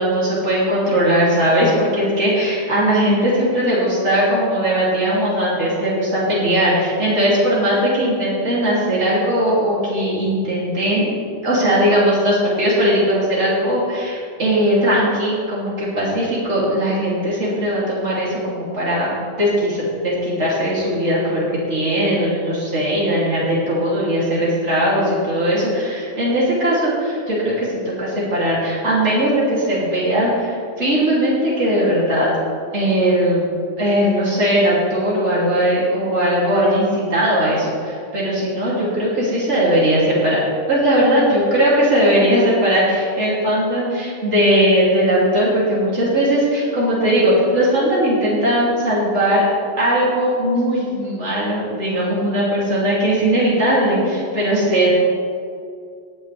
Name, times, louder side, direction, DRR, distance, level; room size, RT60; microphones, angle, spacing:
voice 1, 0.0-11.1 11.4-19.1 19.4-32.3 32.7-33.4 33.8-40.4 40.7-49.5 49.8-54.9, equal, 60° right, -7 dB, 3.4 m, -19 dB
18.5 x 9.8 x 3.5 m, 2.4 s
omnidirectional pair, 1.4 m